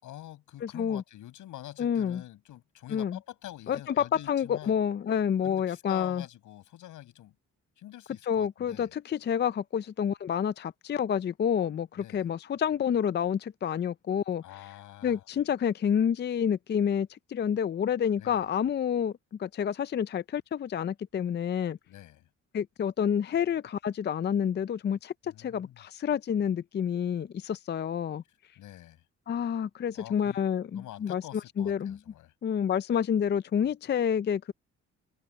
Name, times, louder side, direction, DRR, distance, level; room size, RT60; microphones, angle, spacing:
voice 1, 0.0-4.7 5.4-7.3 7.8-8.9 12.0-12.3 14.4-15.2 18.2-18.4 21.9-22.3 25.2-25.8 28.6-29.0 30.0-30.4 30.7-32.3, left 13 dB, 85° left, 5.6 m, -46 dB
voice 2, 0.6-1.0 1.8-2.2 2.9-3.2 3.7-6.2 8.3-14.4 15.0-19.1 19.4-21.8 22.5-28.2 29.3-31.2 31.6-32.0 32.4-34.5, left 8 dB, 35° left, 0.5 m, -28 dB
cardioid pair, 90°, 30 cm